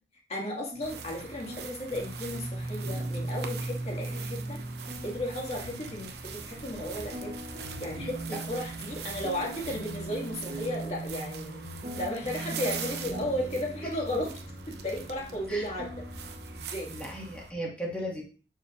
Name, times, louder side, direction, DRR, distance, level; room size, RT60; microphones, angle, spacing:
voice 1, 0.3-4.6 5.0-7.3 7.8-11.6 12.0-14.3 14.7-15.9 16.5-16.9, left 1 dB, 35° left, -1 dB, 2.1 m, -34 dB
sound 1, 0.7-16.6, right 1 dB, 45° right, 1.9 m, -39 dB
sound 2, 0.8-17.5, right 6 dB, 65° right, 0.8 m, -43 dB
sound 3, 5.6-6.1 7.5-8.2 9.6-10.2 11.5-12.2, left 4 dB, 90° left, 0.4 m, -47 dB
voice 2, 16.9-18.2, equal, 5° left, -3 dB, 1.8 m, -36 dB
7.1 x 6.6 x 2.6 m, 0.37 s
head